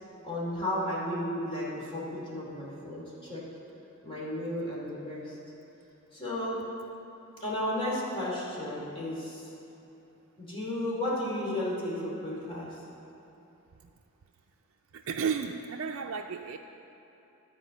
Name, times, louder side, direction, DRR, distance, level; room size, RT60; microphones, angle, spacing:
voice 1, 0.2-3.4 4.0-5.3 6.1-6.6 7.4-9.5 10.4-12.8, left 1 dB, 25° left, -6 dB, 2.5 m, -33 dB
voice 2, 14.9-16.6, right 6 dB, 70° right, 2 dB, 0.4 m, -33 dB
11.5 x 5.0 x 8.1 m, 3.0 s
head